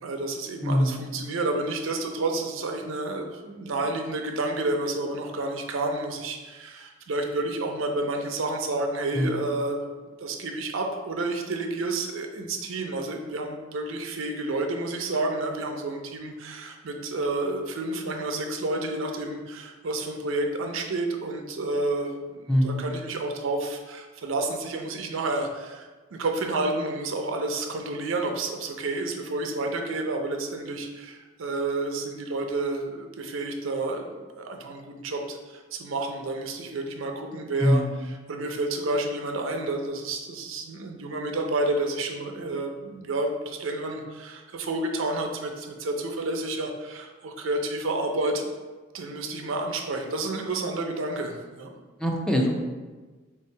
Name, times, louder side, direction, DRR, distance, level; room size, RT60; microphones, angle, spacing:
voice 1, 0.0-9.9 10.2-48.4 48.9-51.8, right 2 dB, 90° right, 3 dB, 0.5 m, -30 dB
voice 2, 0.6-1.0 9.1-9.4 22.5-22.8 37.6-37.9 52.0-52.6, equal, 5° left, 0 dB, 0.5 m, -23 dB
3.4 x 2.8 x 4.4 m, 1.3 s
head